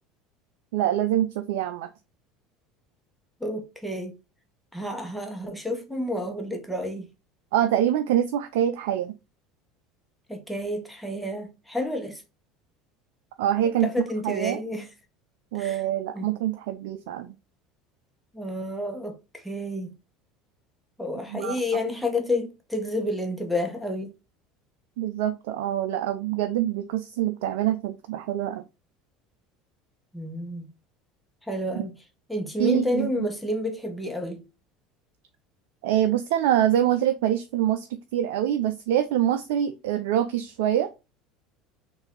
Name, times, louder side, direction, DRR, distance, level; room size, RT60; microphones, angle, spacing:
voice 1, 0.7-1.9 7.5-9.1 13.4-14.6 15.5-17.3 21.3-21.6 25.0-28.6 31.8-31.9 32.6-33.3 35.8-37.9 38.1-40.9, right 11 dB, 75° right, 0.4 m, -25 dB
voice 2, 3.4-4.2 4.7-7.1 10.3-12.2 13.8-14.9 15.5-15.8 16.1-16.3 18.3-19.9 21.0-24.1 30.1-30.7 31.5-32.0 32.3-34.4, left 1 dB, 5° left, 1.2 m, -30 dB
3.9 x 2.7 x 3.9 m
hypercardioid pair, 85°, 0 cm